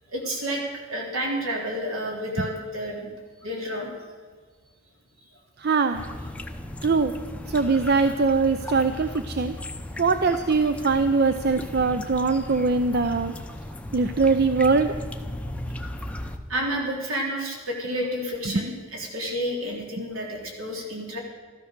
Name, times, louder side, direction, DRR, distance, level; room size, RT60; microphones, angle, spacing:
voice 1, 0.1-0.6 0.9-3.1 3.4-3.9 16.5-21.2, equal, 70° right, -1 dB, 3.5 m, -30 dB
voice 2, 5.6-6.1 6.8-7.1 7.5-9.5 10.0-13.3 13.9-14.9 18.5-18.6, right 4 dB, 45° right, 9 dB, 0.5 m, -22 dB
sound 1, 5.9-16.4, left 1 dB, 5° left, 0.6 m, -36 dB
13.5 x 13.0 x 6.7 m, 1.5 s
head